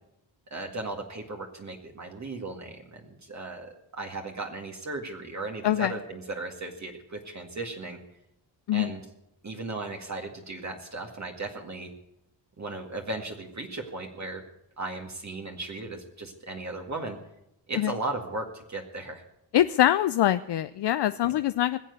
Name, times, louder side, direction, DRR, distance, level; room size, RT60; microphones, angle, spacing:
voice 1, 0.5-8.0 8.7-9.0 9.4-11.9 12.6-14.4 14.8-17.2 17.7-19.2 21.2-21.3, right 2 dB, 40° right, 2 dB, 2.0 m, -36 dB
voice 2, 19.5-21.8, left 12 dB, 65° left, 12 dB, 0.6 m, -24 dB
20.5 x 7.6 x 8.3 m, 0.84 s
cardioid pair, 80°, 43 cm